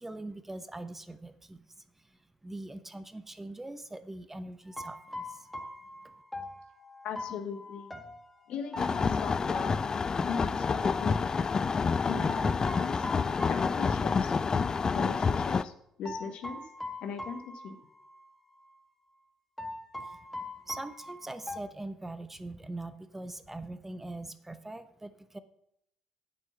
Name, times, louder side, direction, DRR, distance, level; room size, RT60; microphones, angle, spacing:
voice 1, 0.0-5.5 6.0-6.1 20.0-20.2 20.7-25.4, right 2 dB, 15° right, 12 dB, 0.8 m, -42 dB
sound 1, 4.7-10.5 12.3-14.5 14.8-14.9 16.0-18.3 18.6-18.7 19.6-21.6, left 2 dB, 5° left, 1.7 m, -42 dB
voice 2, 7.0-7.9 8.5-9.8 10.2-11.5 12.1-13.1 13.5-14.3 14.9-15.7 16.0-16.6 17.0-17.8, left 6 dB, 55° left, 8 dB, 1.1 m, -39 dB
sound 2, 8.8-15.6, left 5 dB, 35° left, 0.4 m, -28 dB
9.2 x 7.4 x 5.7 m, 0.74 s
figure-of-eight pair, 45°, 2 cm